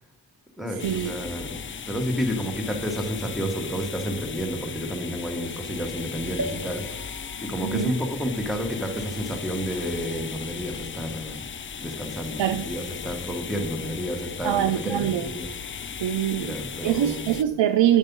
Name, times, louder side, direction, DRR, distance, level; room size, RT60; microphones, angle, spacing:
voice 1, 0.6-7.1 7.4-11.4 11.8-15.5 16.4-17.3, equal, ahead, 3 dB, 1.3 m, -30 dB
sound 1, 0.8-17.4, left 7 dB, 30° left, 0.4 m, -37 dB
sound 2, 6.4-10.0 10.6-10.7 10.9-11.0, right 1 dB, 45° right, 0.9 m, -40 dB
voice 2, 14.4-15.3 16.0-16.5 16.8-18.0, right 11 dB, 85° right, 10 dB, 0.5 m, -23 dB
8.2 x 5.3 x 5.3 m, 1.0 s
wide cardioid pair, 80°, 43 cm